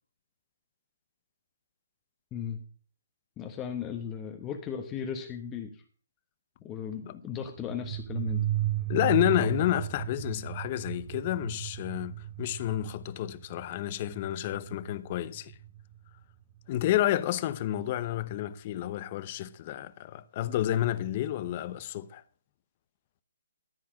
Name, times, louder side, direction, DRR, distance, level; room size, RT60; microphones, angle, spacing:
voice 1, 3.4-5.8 6.6-8.4, left 8 dB, 20° left, 1.1 m, -36 dB
sound 1, 7.6-16.0, right 13 dB, 25° right, 0.8 m, -35 dB
voice 2, 8.9-15.5 16.7-22.2, left 13 dB, 35° left, 0.8 m, -30 dB
14.0 x 4.7 x 7.4 m
hypercardioid pair, 150°, 0 cm